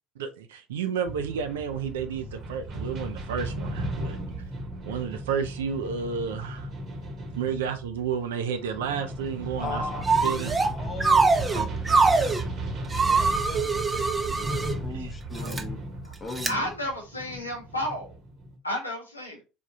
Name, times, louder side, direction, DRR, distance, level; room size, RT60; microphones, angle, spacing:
voice 1, 0.2-4.2 4.9-6.7 7.3-9.8 10.2-10.5 11.5-11.7 14.9-15.1 15.4-15.6, right 7 dB, 70° right, 0.3 m, -31 dB
sound 1, 1.0-18.6, right 2 dB, 45° right, 0.9 m, -35 dB
voice 2, 9.6-12.5 13.0-15.8 16.2-16.7, left 3 dB, 25° left, 0.7 m, -39 dB
sound 2, 10.0-10.7 11.0-12.4 12.9-14.7 15.4-15.6 16.4-16.5, right 4 dB, 20° right, 0.5 m, -23 dB
voice 3, 16.5-18.1 18.6-19.4, equal, 85° left, 0.7 m, -32 dB
3.4 x 2.3 x 2.7 m
figure-of-eight pair, 60°, 0 cm